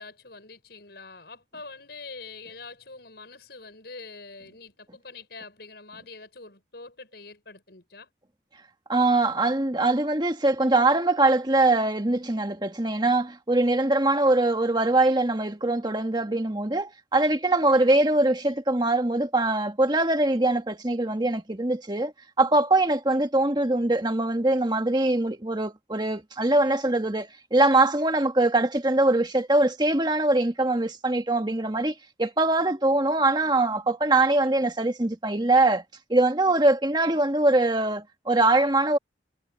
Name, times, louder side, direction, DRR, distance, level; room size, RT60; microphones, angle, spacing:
voice 1, 0.0-8.1, left 3 dB, 65° left, 6.3 m, -44 dB
voice 2, 8.9-22.1 22.4-35.8 36.1-39.0, right 2 dB, 25° right, 1.7 m, -22 dB
head